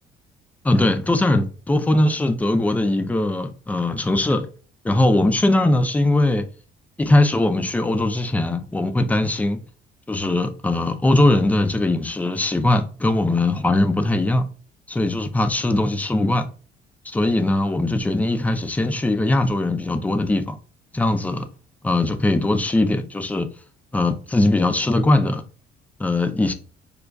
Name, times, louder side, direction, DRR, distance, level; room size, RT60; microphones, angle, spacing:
voice 1, 0.6-4.5 4.8-6.5 7.0-9.6 10.1-14.4 14.9-16.5 17.0-20.6 20.9-21.5 21.8-23.5 23.9-25.4 26.0-26.5, left 2 dB, 10° left, 0.3 m, -20 dB
5.0 x 2.3 x 2.3 m
cardioid pair, 110°, 17 cm